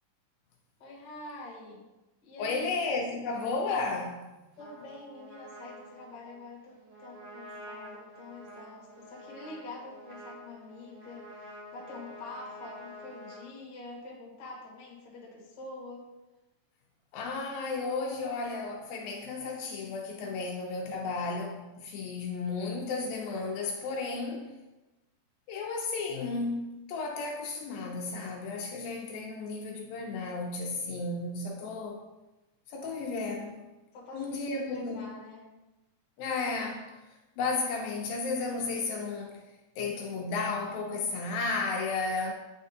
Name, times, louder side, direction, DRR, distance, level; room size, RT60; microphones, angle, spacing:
voice 1, 0.8-1.8 2.2-2.7 4.6-16.1 33.9-35.5, left 2 dB, 50° left, 1.3 m, -46 dB
voice 2, 2.4-4.3 17.1-24.5 25.5-32.0 32.7-33.6 34.1-35.0 36.2-36.9 37.4-39.4 39.8-42.3, left 3 dB, 80° left, 2.3 m, -33 dB
Trumpet, 4.6-13.4, equal, 50° right, 3.0 m, -48 dB
9.4 x 4.2 x 2.7 m
omnidirectional pair, 4.5 m